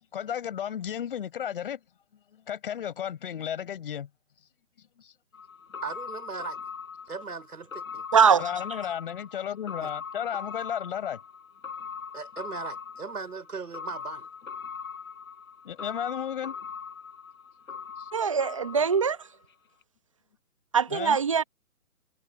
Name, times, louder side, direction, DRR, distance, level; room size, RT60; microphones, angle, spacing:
voice 1, 0.1-1.8 2.3-4.1 5.0-5.1 8.4-11.2 15.6-16.6 18.0-18.1 20.9-21.2, left 9 dB, 35° left, 6.0 m, -33 dB
sound 1, 5.3-19.5 19.8-19.9, left 6 dB, 65° left, 7.7 m, -41 dB
voice 2, 5.8-6.6 7.1-8.1 9.8-9.9 12.1-14.3, right 5 dB, 85° right, 5.2 m, -38 dB
voice 3, 8.1-8.5 18.1-19.2 20.7-21.4, right 6 dB, 20° right, 0.9 m, -22 dB
hypercardioid pair, 165°, 44 cm